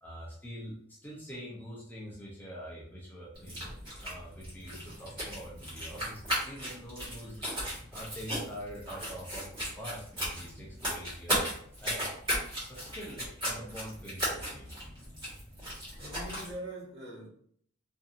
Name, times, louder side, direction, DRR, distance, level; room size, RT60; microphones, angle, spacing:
voice 1, 0.0-7.4 7.9-11.5 11.8-12.0 12.7-14.7, equal, 10° left, -5 dB, 0.5 m, -45 dB
sound 1, 3.3-16.5, equal, 20° right, 1.4 m, -36 dB
voice 2, 16.0-17.3, right 1 dB, 55° right, -7 dB, 1.2 m, -42 dB
2.7 x 2.6 x 2.4 m, 0.62 s
head